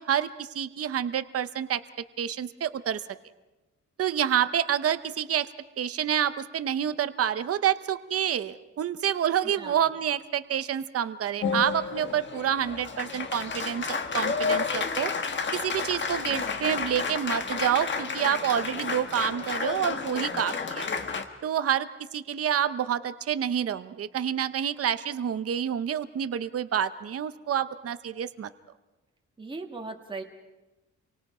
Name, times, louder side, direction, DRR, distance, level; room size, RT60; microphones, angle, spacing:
voice 1, 0.0-1.8 2.2-3.0 4.0-5.5 5.8-15.1 15.5-20.9 21.4-28.5, right 9 dB, 50° right, 12 dB, 0.8 m, -28 dB
voice 2, 9.4-9.8 29.4-30.2, right 3 dB, 15° right, 2 dB, 1.5 m, -38 dB
Applause, 11.4-21.2, left 5 dB, 35° left, 1.4 m, -31 dB
30.0 x 24.0 x 4.9 m, 1.1 s
wide cardioid pair, 180°, 31 cm